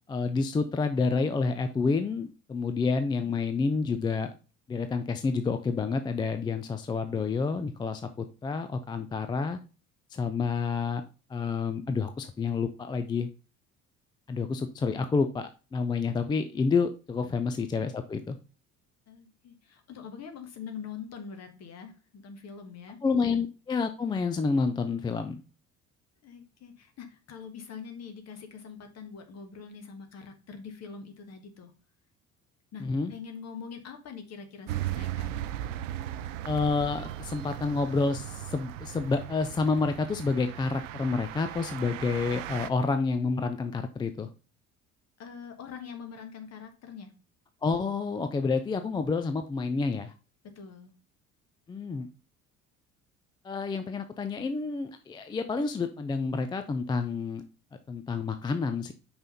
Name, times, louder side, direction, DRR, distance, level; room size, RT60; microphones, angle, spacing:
voice 1, 0.1-4.3 4.7-9.6 10.1-11.0 11.3-13.3 14.3-18.4 23.0-25.4 32.8-33.1 36.4-44.3 47.6-50.1 51.7-52.1 53.4-57.4 57.9-58.9, left 4 dB, 10° left, 8 dB, 0.4 m, -29 dB
voice 2, 19.1-23.3 26.2-31.7 32.7-35.3 45.2-47.1 50.5-50.9, left 6 dB, 40° left, 6 dB, 1.4 m, -44 dB
sound 1, 34.7-42.7, right 13 dB, 65° right, 0.6 m, -37 dB
5.5 x 4.3 x 5.2 m, 0.33 s
figure-of-eight pair, 60°, 41 cm